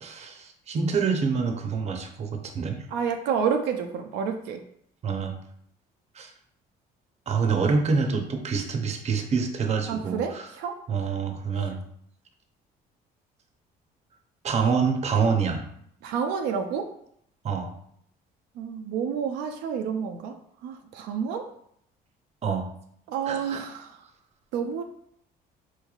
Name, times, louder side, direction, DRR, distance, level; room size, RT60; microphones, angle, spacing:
voice 1, 0.0-2.9 5.0-5.4 6.1-6.3 7.3-10.5 10.9-11.8 14.4-15.6 17.4-17.7 22.4-22.6 23.3-23.6, right 5 dB, 40° right, 4 dB, 0.6 m, -26 dB
voice 2, 2.9-4.6 9.9-10.8 16.0-16.9 18.6-20.3 20.6-21.4 23.1-23.9 24.5-24.8, right 6 dB, 85° right, 4 dB, 0.4 m, -29 dB
4.3 x 3.1 x 2.3 m, 0.69 s
cardioid pair, 110°, 17 cm